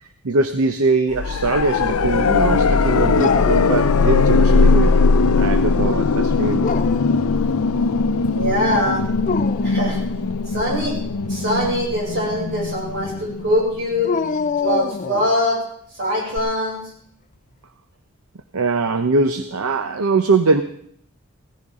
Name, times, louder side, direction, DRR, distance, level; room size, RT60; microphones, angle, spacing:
voice 1, 0.0-4.9 5.4-6.6 18.5-20.6, right 3 dB, 80° right, 9 dB, 0.7 m, -21 dB
sound 1, 1.1-14.0 16.4-16.5, left 4 dB, 80° left, 0.6 m, -19 dB
Dog, 3.2-4.3 4.7-5.4 6.4-7.2 9.1-9.8 14.0-15.4, left 5 dB, 35° left, 0.4 m, -26 dB
voice 2, 8.3-9.0 9.6-10.0 10.5-10.9 11.3-14.1 14.6-15.6 16.0-16.8, left 1 dB, 55° right, -3 dB, 6.8 m, -22 dB
16.0 x 14.5 x 3.7 m, 0.65 s
head